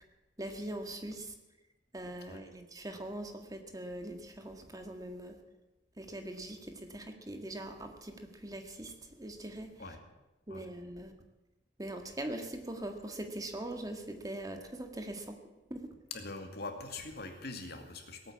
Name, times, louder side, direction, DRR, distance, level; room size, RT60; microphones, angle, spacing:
voice 1, 0.4-1.3 1.9-5.4 6.0-9.8 10.5-11.1 11.8-15.3 15.7-15.9, right 1 dB, 20° right, 5 dB, 1.7 m, -42 dB
voice 2, 16.1-18.3, left 3 dB, 60° left, 4 dB, 2.3 m, -43 dB
18.0 x 8.8 x 8.5 m, 1.1 s
head